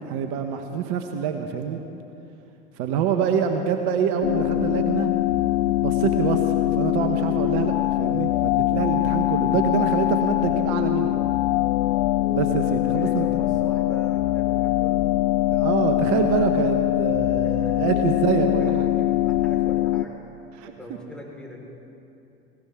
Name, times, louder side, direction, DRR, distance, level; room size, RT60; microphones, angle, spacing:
voice 1, 0.1-1.8 2.8-5.1 5.8-11.2 12.3-13.3 15.5-18.9 20.6-20.7, right 7 dB, 60° right, 5 dB, 1.1 m, -26 dB
sound 1, 4.2-20.1, left 15 dB, 65° left, 0.5 m, -22 dB
voice 2, 12.9-15.1 17.4-18.0 18.4-20.2 20.7-21.7, left 2 dB, 5° left, -3 dB, 4.4 m, -41 dB
19.5 x 17.5 x 3.7 m, 2.8 s
hypercardioid pair, 80°, 32 cm